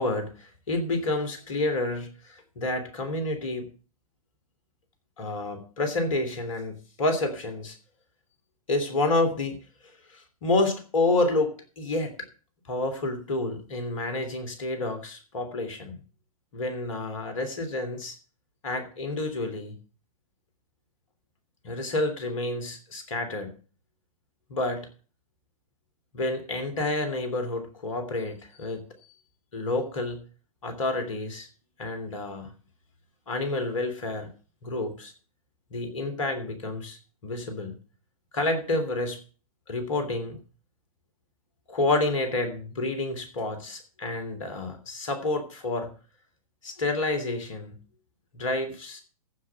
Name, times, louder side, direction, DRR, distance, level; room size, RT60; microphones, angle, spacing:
voice 1, 0.0-3.7 5.2-7.8 8.7-9.6 10.1-12.3 12.7-16.0 16.5-18.1 18.6-19.8 21.6-23.5 24.5-24.9 26.1-28.8 29.5-30.2 30.6-31.5 31.8-32.5 33.3-34.3 34.6-35.1 35.7-37.0 37.2-37.7 38.3-39.2 39.7-40.4 41.7-45.9 46.6-47.8 48.3-49.0, left 2 dB, 60° left, 7 dB, 3.0 m, -29 dB
14.5 x 5.1 x 7.3 m, 0.39 s
figure-of-eight pair, 105°, 19 cm